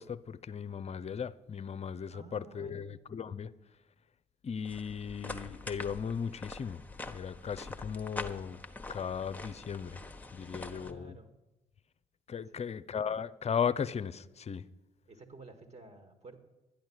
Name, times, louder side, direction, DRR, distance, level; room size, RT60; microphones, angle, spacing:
voice 1, 0.0-3.5 4.4-8.6 8.9-10.0 10.3-11.1 12.3-14.6, left 7 dB, 35° left, 0.6 m, -36 dB
voice 2, 2.1-2.9 10.4-11.3 12.4-12.7 15.1-16.4, right 3 dB, 35° right, 2.1 m, -53 dB
sound 1, 4.6-10.9, left 2 dB, 10° left, 1.2 m, -44 dB
12.0 x 10.5 x 6.4 m
hypercardioid pair, 50°, 20 cm